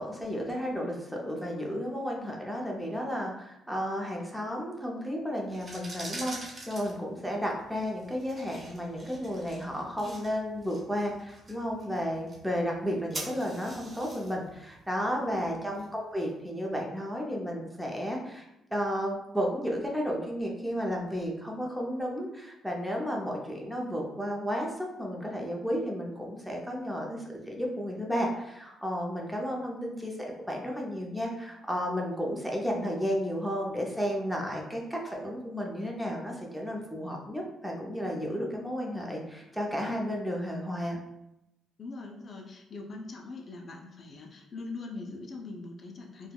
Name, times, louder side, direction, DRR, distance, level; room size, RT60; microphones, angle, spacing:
voice 1, 0.0-18.5 18.7-30.2 30.5-41.0, equal, 5° right, -1 dB, 0.6 m, -33 dB
sound 1, 5.4-16.3, right 2 dB, 35° right, 0.9 m, -46 dB
voice 2, 41.8-46.3, left 3 dB, 45° left, 1 dB, 0.5 m, -42 dB
3.3 x 2.2 x 2.3 m, 0.88 s
cardioid pair, 90°, 0 cm